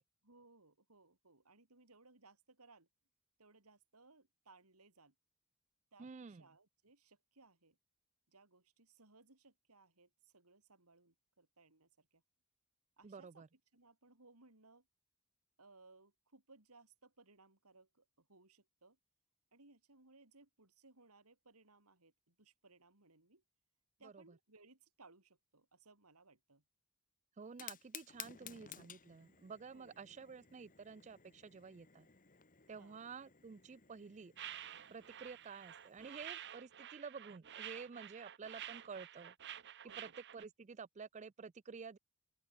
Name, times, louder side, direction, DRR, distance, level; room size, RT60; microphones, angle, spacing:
voice 1, 0.2-2.9 3.4-5.1 5.9-7.8 8.3-12.2 13.0-13.4 13.7-14.9 15.6-19.0 19.5-23.4 24.0-26.6 29.7-30.0 32.8-33.0 39.8-40.1, right 3 dB, 80° right, 4.3 m, -65 dB
voice 2, 6.0-6.4 13.0-13.5 24.0-24.2 27.4-32.1 32.7-34.3 34.9-39.3 40.0-42.0, right 5 dB, 30° right, 0.4 m, -51 dB
Fire, 27.4-36.3, left 10 dB, 35° left, 1.9 m, -56 dB
sound 1, 34.4-40.4, right 11 dB, 50° right, 0.8 m, -50 dB
open air
head